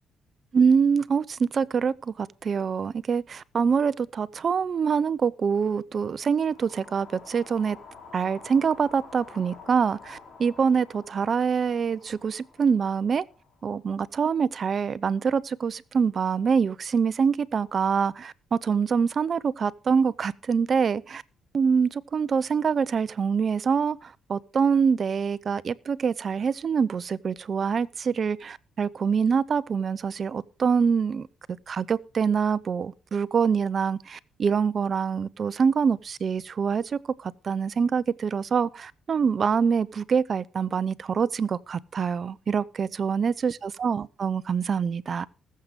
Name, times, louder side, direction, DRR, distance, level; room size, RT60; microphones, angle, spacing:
voice 1, 0.5-7.8 8.1-13.2 13.6-21.2 21.5-31.3 31.7-45.3, right 6 dB, 45° right, 0.7 m, -25 dB
sound 1, 6.2-14.4, left 4 dB, 60° left, 3.4 m, -49 dB
20.5 x 7.6 x 3.6 m
cardioid pair, 90°, 0 cm